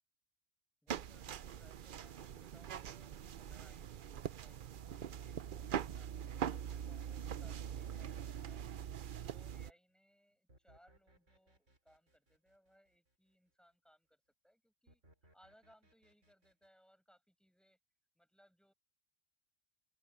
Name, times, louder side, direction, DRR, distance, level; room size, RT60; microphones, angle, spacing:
voice 1, 0.8-4.8 5.2-15.0 15.3-17.8 18.1-18.7, equal, ahead, 6.6 m, -69 dB
sound 1, 0.9-9.7, right 9 dB, 55° right, 0.7 m, -43 dB
sound 2, 2.2-5.0 6.1-9.6 10.5-13.2 14.9-16.7, right 1 dB, 85° right, 5.6 m, -69 dB
open air
omnidirectional pair, 1.2 m